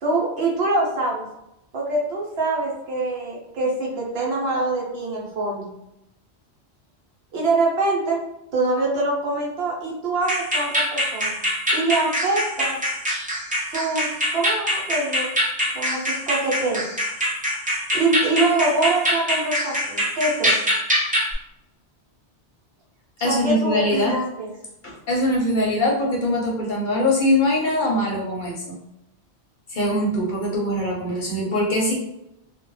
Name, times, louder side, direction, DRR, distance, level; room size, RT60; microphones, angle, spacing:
voice 1, 0.0-1.2 1.7-5.7 7.3-8.2 8.5-11.3 11.7-12.8 13.7-15.3 15.7-17.0 17.9-20.6 23.2-24.5, right 2 dB, 70° right, -2 dB, 0.9 m, -24 dB
sound 1, 10.2-21.3, equal, 15° right, 0.4 m, -24 dB
voice 2, 23.2-24.2 24.8-28.8 29.7-31.9, left 1 dB, 50° left, -3 dB, 0.7 m, -22 dB
2.3 x 2.1 x 3.1 m, 0.86 s
omnidirectional pair, 1.1 m